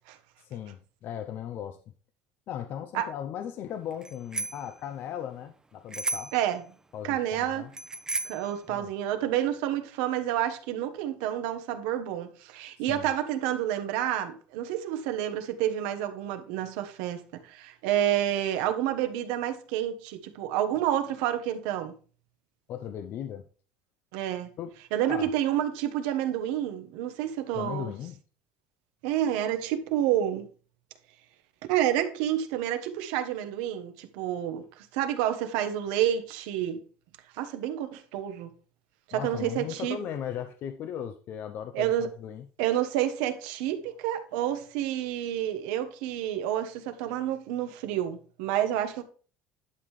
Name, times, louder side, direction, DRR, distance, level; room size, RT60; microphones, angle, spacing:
voice 1, 0.4-1.8 2.5-6.3 6.9-7.7 8.7-8.9 12.9-13.1 22.7-23.5 24.6-24.8 25.1-25.3 27.6-28.2 39.1-42.4, left 9 dB, 55° left, 0.6 m, -37 dB
Bicycle bell, 4.0-4.7 5.9-6.5 7.7-8.5, right 3 dB, 15° right, 0.9 m, -33 dB
voice 2, 7.0-7.7 8.2-21.9 24.1-24.5 24.9-27.9 29.0-30.5 31.7-36.8 37.4-38.5 39.1-40.0 41.7-42.1 42.6-49.0, right 11 dB, 80° right, 1.2 m, -29 dB
11.0 x 5.6 x 3.2 m
supercardioid pair, 110°, 4 cm